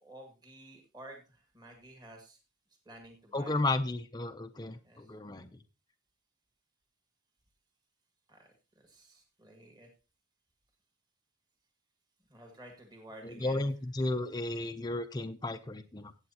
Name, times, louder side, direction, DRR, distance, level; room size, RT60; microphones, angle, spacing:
voice 1, 0.0-2.4 2.9-3.7 4.8-5.1 8.3-9.9 12.3-13.7, right 1 dB, 20° right, 2 dB, 1.8 m, -52 dB
voice 2, 3.3-5.5 13.2-16.1, left 2 dB, 20° left, 6 dB, 0.5 m, -33 dB
15.5 x 8.1 x 2.8 m, 0.31 s
head